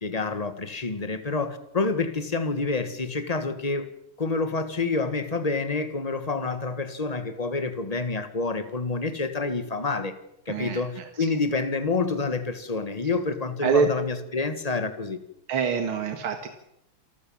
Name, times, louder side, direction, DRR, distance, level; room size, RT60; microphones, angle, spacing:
voice 1, 0.0-3.9 4.2-10.1 10.5-15.2, left 3 dB, 20° left, 10 dB, 1.5 m, -28 dB
voice 2, 10.5-10.8 13.6-13.9 15.5-16.5, right 5 dB, 90° right, 7 dB, 2.5 m, -24 dB
27.5 x 14.0 x 7.3 m, 0.81 s
omnidirectional pair, 2.2 m